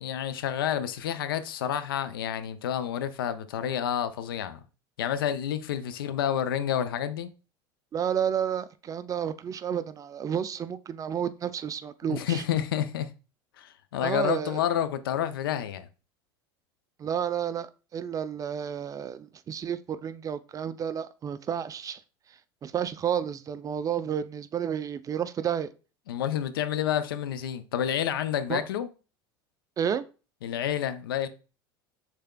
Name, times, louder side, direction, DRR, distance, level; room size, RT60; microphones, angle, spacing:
voice 1, 0.0-4.6 5.0-7.3 12.1-13.1 13.6-15.9 26.1-28.9 30.4-31.3, left 9 dB, 85° left, 0.5 m, -29 dB
voice 2, 7.9-12.4 14.0-14.6 17.0-22.0 22.6-25.7 28.5-28.6 29.8-30.0, right 8 dB, 30° right, 0.4 m, -31 dB
6.6 x 3.4 x 2.2 m
hypercardioid pair, 90°, 12 cm